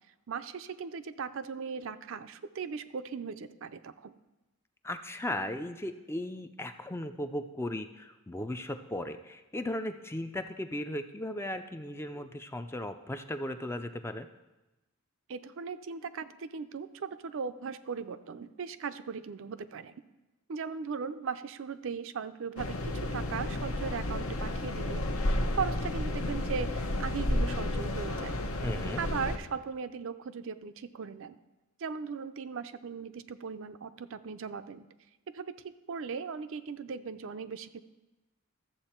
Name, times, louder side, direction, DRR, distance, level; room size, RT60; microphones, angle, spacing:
voice 1, 0.3-4.1 15.3-19.9 20.5-28.4 29.0-31.4 31.8-34.9 35.3-37.8, right 5 dB, 60° right, 11 dB, 0.4 m, -38 dB
voice 2, 4.8-14.3 28.6-29.0, left 1 dB, 10° left, 8 dB, 0.4 m, -36 dB
sound 1, 22.6-29.4, left 1 dB, 75° left, 0.9 m, -32 dB
13.5 x 7.1 x 4.4 m, 1.0 s
head